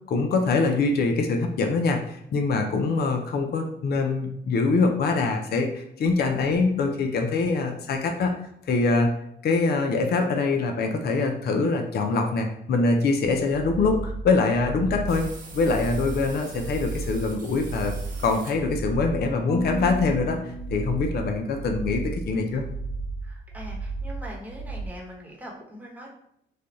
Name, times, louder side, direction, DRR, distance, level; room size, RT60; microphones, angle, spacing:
voice 1, 0.1-8.4 8.7-9.1 9.4-15.3 15.5-17.9 18.2-22.7, left 3 dB, 55° left, 4 dB, 0.6 m, -24 dB
sound 1, 13.5-24.9, right 3 dB, 75° left, 1.5 m, -34 dB
sound 2, 15.1-19.1, right 3 dB, 40° right, 0.9 m, -45 dB
Marimba xylophone / Wood, 19.5-21.7, left 1 dB, 15° left, 0.7 m, -36 dB
voice 2, 23.2-26.1, equal, 10° right, -2 dB, 1.1 m, -41 dB
3.3 x 2.2 x 3.9 m, 0.74 s
cardioid pair, 90°, 20 cm